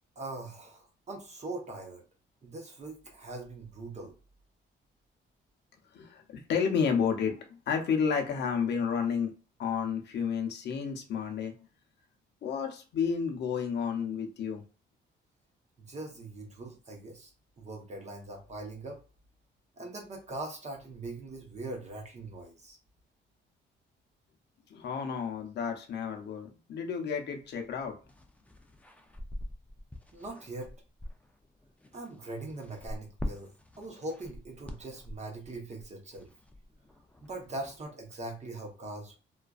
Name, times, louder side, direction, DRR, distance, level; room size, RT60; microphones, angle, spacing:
voice 1, 0.2-2.0 2.4-4.1 15.8-17.3 17.6-19.0 19.8-22.8 30.1-30.7 31.9-33.5 33.8-36.3 37.2-39.1, right 2 dB, 35° right, 0 dB, 0.8 m, -41 dB
voice 2, 5.9-9.3 9.6-11.5 12.4-14.6 24.7-28.0, left 6 dB, 60° left, 3 dB, 0.6 m, -31 dB
sound 1, 28.0-37.9, left 1 dB, 5° left, 0.4 m, -45 dB
2.4 x 2.2 x 2.3 m, 0.35 s
cardioid pair, 90°, 20 cm